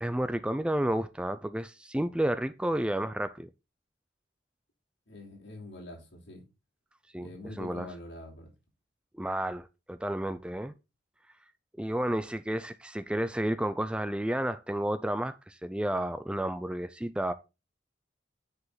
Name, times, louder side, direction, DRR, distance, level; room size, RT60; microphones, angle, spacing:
voice 1, 0.0-3.5 7.1-7.3 7.6-7.9 9.2-10.7 11.8-17.3, right 1 dB, 5° right, 0.4 m, -31 dB
voice 2, 5.1-6.4 7.2-8.5, left 1 dB, 70° left, 3.2 m, -45 dB
9.6 x 4.9 x 3.9 m
head